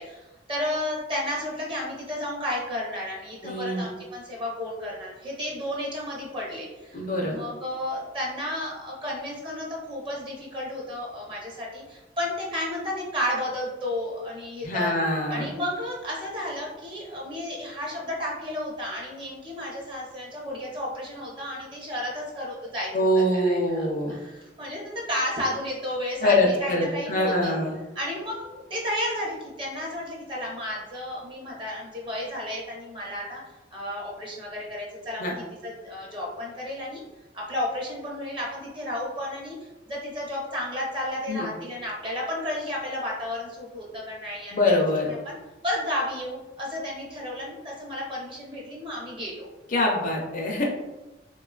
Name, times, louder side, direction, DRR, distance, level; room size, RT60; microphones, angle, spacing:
voice 1, 0.0-7.0 7.3-14.9 15.3-27.5 27.9-33.4 33.7-35.3 35.6-37.0 37.3-39.6 39.9-44.7 45.2-45.4 45.6-49.5, left 1 dB, 25° right, -3 dB, 0.7 m, -32 dB
voice 2, 3.4-3.9 6.9-7.4 14.6-15.5 22.9-24.1 26.2-27.7 35.2-35.3 41.3-41.5 44.5-45.1 49.7-50.7, left 1 dB, 45° left, 0 dB, 0.5 m, -24 dB
3.3 x 2.2 x 2.3 m, 1.0 s
head